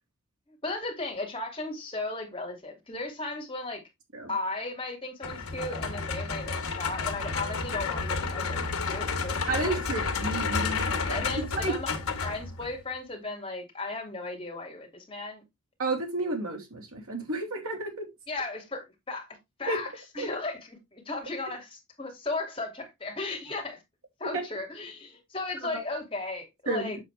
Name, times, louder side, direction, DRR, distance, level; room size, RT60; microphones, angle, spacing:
voice 1, 0.5-3.8 4.3-9.7 11.1-11.9 12.2-15.4 18.3-19.3 19.6-23.8 24.2-27.0, left 2 dB, 25° left, 2.5 m, -36 dB
sound 1, 5.2-12.8, left 4 dB, 85° left, 1.5 m, -31 dB
voice 2, 9.5-11.7 15.8-18.1 19.7-19.8 20.2-20.3 25.7-25.8 26.7-26.9, right 2 dB, 80° right, 3.1 m, -31 dB
7.4 x 6.9 x 3.3 m
head